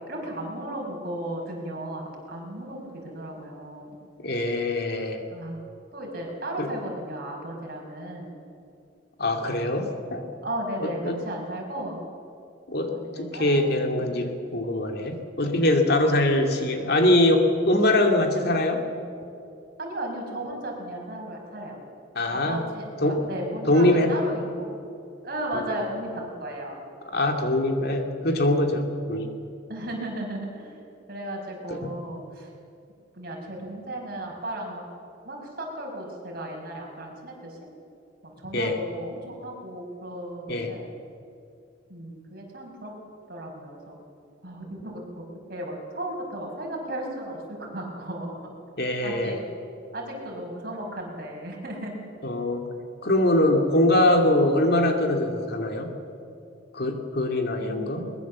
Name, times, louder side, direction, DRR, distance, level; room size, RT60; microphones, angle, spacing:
voice 1, 0.0-4.0 5.3-5.6 5.9-8.4 10.4-12.0 12.9-13.7 14.0-14.1 19.8-21.8 22.3-24.8 25.2-26.8 29.7-30.8 31.1-32.5 33.1-34.9 35.2-37.6 38.2-40.9 41.9-42.9 43.3-44.0 44.4-48.5 49.0-49.4 49.9-51.9 57.6-58.1, right 1 dB, 55° right, 0 dB, 5.5 m, -35 dB
voice 2, 4.2-5.2 6.6-6.7 9.2-10.3 10.8-11.2 12.7-18.8 22.2-22.6 23.0-23.3 23.7-24.1 27.1-29.3 31.7-32.0 38.5-38.8 40.5-40.7 48.8-49.4 52.2-52.7 53.0-55.9 56.7-58.1, left 1 dB, 55° left, 4 dB, 2.4 m, -23 dB
22.0 x 20.5 x 7.4 m, 2.5 s
head